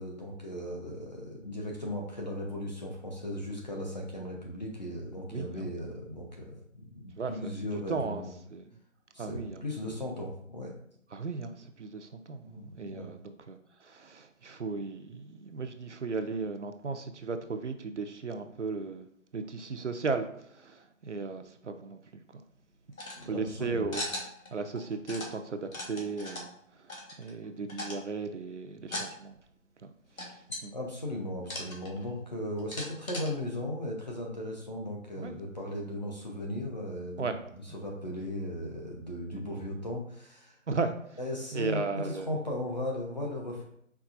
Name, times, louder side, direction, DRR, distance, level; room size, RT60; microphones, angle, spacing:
voice 1, 0.0-6.6 7.3-8.3 9.1-10.7 12.5-13.2 23.2-23.9 30.7-37.3 37.7-40.5 41.2-43.7, left 1 dB, 35° left, -1 dB, 0.7 m, -37 dB
voice 2, 5.3-5.7 7.2-8.2 8.5-8.7 9.2-9.6 11.1-19.1 19.3-22.4 23.2-24.0 24.5-26.5 26.8-29.4 29.8-29.9 30.2-30.7 35.2-35.4 37.2-37.4 39.3-39.6 40.7-41.2 41.5-42.3, right 4 dB, 60° right, 7 dB, 0.5 m, -36 dB
sound 1, 22.9-23.3 23.9-24.5 24.8-25.3 25.7-26.5 26.9-27.4 27.7-28.1 28.8-29.1 29.4-29.5 30.2-30.6 31.4-32.1 32.6-33.3, left 1 dB, 85° left, 1.4 m, -38 dB
4.7 x 3.5 x 2.5 m, 0.68 s
figure-of-eight pair, 170°, 40 cm